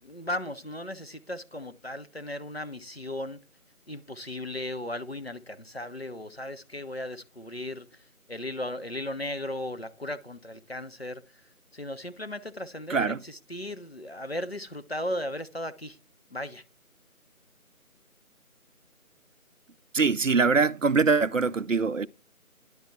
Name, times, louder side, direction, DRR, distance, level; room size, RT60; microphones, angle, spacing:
voice 1, 0.0-3.4 3.9-8.0 8.3-11.2 11.7-16.0 16.3-16.6, left 1 dB, 45° left, 0.8 m, -36 dB
voice 2, 12.9-13.2 19.9-22.1, right 4 dB, 65° right, 0.5 m, -23 dB
11.0 x 4.1 x 4.4 m
figure-of-eight pair, 175°, 43 cm